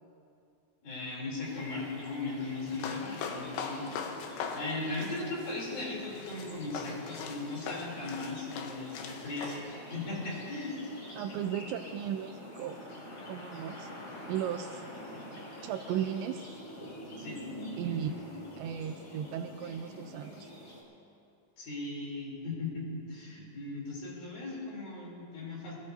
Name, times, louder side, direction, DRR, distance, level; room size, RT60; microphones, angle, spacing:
voice 1, 0.8-3.9 4.2-10.8 15.1-15.2 17.2-17.4 21.6-25.7, left 3 dB, 50° left, -4 dB, 4.8 m, -38 dB
sound 1, 1.4-20.8, left 1 dB, 30° left, 1.8 m, -46 dB
sound 2, 2.7-9.6, left 6 dB, 75° left, 3.3 m, -41 dB
voice 2, 11.2-12.8 13.3-13.9 14.3-14.8 15.6-16.4 17.8-18.1 18.6-20.5, right 9 dB, 85° right, 6 dB, 2.8 m, -35 dB
25.0 x 16.5 x 2.7 m, 2.6 s
omnidirectional pair, 5.5 m